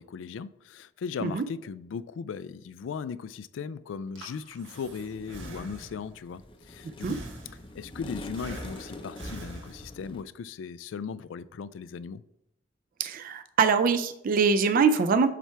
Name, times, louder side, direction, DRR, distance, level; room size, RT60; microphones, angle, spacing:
voice 1, 0.0-6.4 6.7-7.2 7.7-12.2, left 6 dB, 90° left, 0.3 m, -37 dB
Breathing, 3.9-6.2 7.0-7.9 8.3-10.2, right 1 dB, 80° right, 1.3 m, -43 dB
sound 1, 4.8-10.2, left 2 dB, 25° left, 0.5 m, -45 dB
voice 2, 13.0-15.3, right 5 dB, 45° right, 0.3 m, -23 dB
7.3 x 3.4 x 4.4 m
head